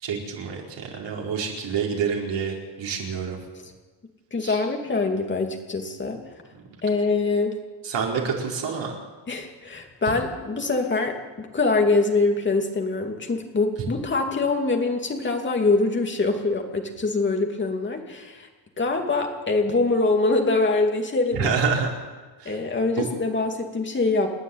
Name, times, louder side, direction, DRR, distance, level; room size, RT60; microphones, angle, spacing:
voice 1, 0.0-3.4 4.4-4.6 7.8-8.9 21.3-21.9 22.4-22.5, right 6 dB, 65° right, -1 dB, 4.8 m, -27 dB
voice 2, 4.3-6.2 6.8-7.6 9.3-18.5 18.8-21.6 22.4-24.3, left 3 dB, 25° left, 2 dB, 2.6 m, -24 dB
29.5 x 10.0 x 9.4 m, 1.3 s
wide cardioid pair, 180°, 46 cm